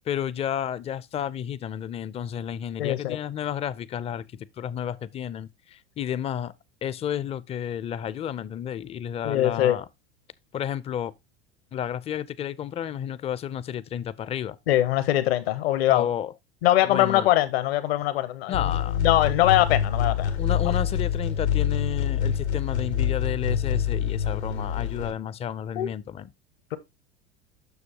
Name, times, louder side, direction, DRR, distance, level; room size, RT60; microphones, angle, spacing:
voice 1, 0.1-6.5 6.8-9.8 10.5-11.1 11.7-14.6 15.9-16.3 16.8-17.3 18.5-19.0 20.4-26.3, left 9 dB, 20° left, 0.4 m, -31 dB
voice 2, 2.8-3.2 9.2-9.8 14.7-16.1 16.6-18.7 19.0-20.4 20.6-20.7 25.7-25.9 26.7-26.8, left 14 dB, 70° left, 0.9 m, -22 dB
sound 1, 18.5-25.1, left 8 dB, 90° left, 1.1 m, -26 dB
7.1 x 6.2 x 2.8 m
hypercardioid pair, 80°, 32 cm